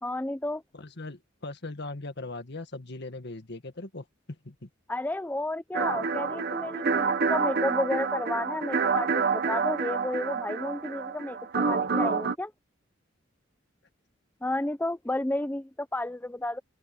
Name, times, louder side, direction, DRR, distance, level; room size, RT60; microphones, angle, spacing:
voice 1, 0.0-0.6 4.9-12.5 14.4-16.6, left 1 dB, 10° left, 0.6 m, -32 dB
voice 2, 0.7-4.1 4.4-4.7, left 2 dB, 60° left, 1.8 m, -39 dB
sound 1, 5.7-12.4, right 5 dB, 55° right, 1.0 m, -28 dB
head